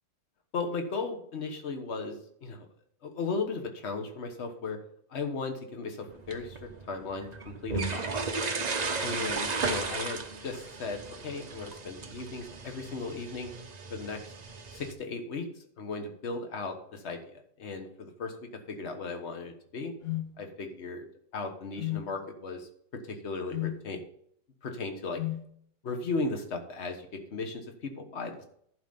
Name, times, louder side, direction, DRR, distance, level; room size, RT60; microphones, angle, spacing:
voice 1, 0.5-2.7 3.0-4.8 5.1-8.1 9.0-13.5 13.9-14.2 14.7-19.9 20.4-21.1 21.3-24.0 24.6-25.2 25.8-28.4, left 3 dB, 40° left, 5 dB, 1.4 m, -36 dB
sound 1, 6.1-14.9, right 4 dB, 45° right, 0.5 m, -35 dB
sound 2, 20.0-20.3 21.8-22.1 23.5-23.8 25.2-25.5, left 16 dB, 60° left, 1.0 m, -33 dB
11.0 x 5.3 x 5.6 m, 0.67 s
omnidirectional pair, 1.9 m